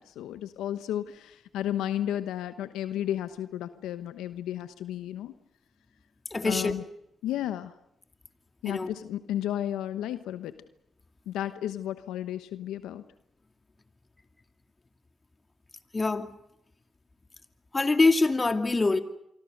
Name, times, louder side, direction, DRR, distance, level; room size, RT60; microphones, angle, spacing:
voice 1, 0.0-5.3 6.4-6.8 7.2-7.7 8.6-10.6 11.3-13.0, left 11 dB, 85° left, 11 dB, 1.0 m, -33 dB
voice 2, 6.3-6.7 8.7-8.9 15.9-16.3 17.7-19.0, left 3 dB, 30° left, 8 dB, 2.3 m, -24 dB
26.5 x 24.0 x 6.6 m, 0.82 s
supercardioid pair, 50°, 0 cm